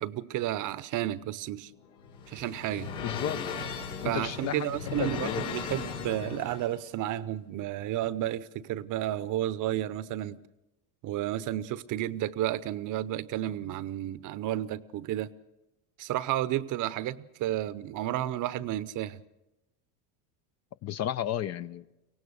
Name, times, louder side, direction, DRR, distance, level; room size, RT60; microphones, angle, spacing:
voice 1, 0.0-1.7 2.3-2.9 4.0-10.4 11.0-15.3 16.0-19.2, right 13 dB, 45° right, 0.8 m, -32 dB
sound 1, 1.6-6.8, left 6 dB, 85° left, 3.7 m, -37 dB
voice 2, 3.0-3.4 4.0-5.5 20.8-21.8, left 10 dB, 35° left, 0.6 m, -33 dB
24.0 x 17.5 x 6.5 m
supercardioid pair, 110°, 45 cm